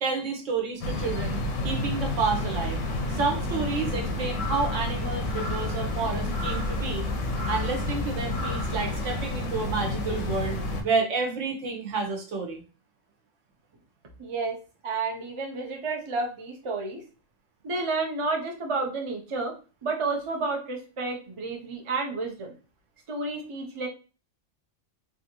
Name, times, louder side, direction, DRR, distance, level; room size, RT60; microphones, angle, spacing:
voice 1, 0.0-2.8 3.1-7.1 7.5-12.6, right 4 dB, 70° right, 2 dB, 1.1 m, -30 dB
sound 1, 0.8-10.8, left 1 dB, 90° left, 1.1 m, -30 dB
voice 2, 14.2-14.6 14.8-17.0 17.6-19.5 19.8-22.5 23.1-23.9, right 3 dB, 40° right, 1 dB, 0.4 m, -30 dB
3.3 x 2.5 x 2.8 m, 0.34 s
omnidirectional pair, 1.3 m